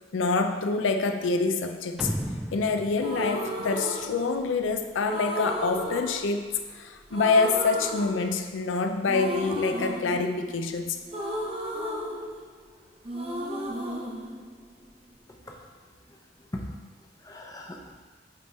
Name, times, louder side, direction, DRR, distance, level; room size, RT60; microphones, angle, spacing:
voice 1, 0.1-2.1 2.5-11.0, left 4 dB, 85° left, 6 dB, 0.5 m, -26 dB
sound 1, 2.0-4.5, equal, ahead, 0.4 m, -35 dB
sound 2, 2.9-4.6 5.1-6.8 7.1-8.7 9.1-12.8 13.0-15.1, equal, 30° right, 0.9 m, -34 dB
voice 2, 15.3-15.6 16.1-16.7 17.2-18.0, left 1 dB, 20° left, 0 dB, 0.8 m, -40 dB
8.1 x 3.5 x 4.2 m, 1.3 s
head